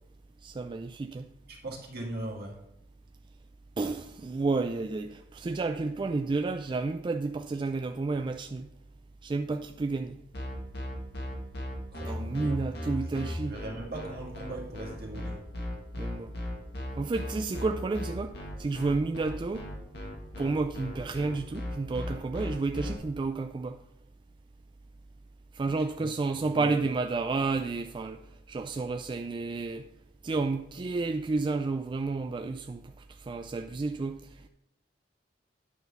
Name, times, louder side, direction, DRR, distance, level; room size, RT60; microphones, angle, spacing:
voice 1, 0.4-1.3 3.8-8.7 9.2-10.2 12.0-13.6 16.0-16.3 16.9-19.7 20.4-23.8 25.5-29.9 30.2-34.5, right 3 dB, 25° right, 0.3 m, -31 dB
voice 2, 1.5-2.6 11.9-15.4 26.0-26.1 26.4-26.8, right 1 dB, 60° right, 1.8 m, -40 dB
sound 1, 10.3-22.9, left 1 dB, 65° left, 1.9 m, -37 dB
9.4 x 4.0 x 6.7 m
head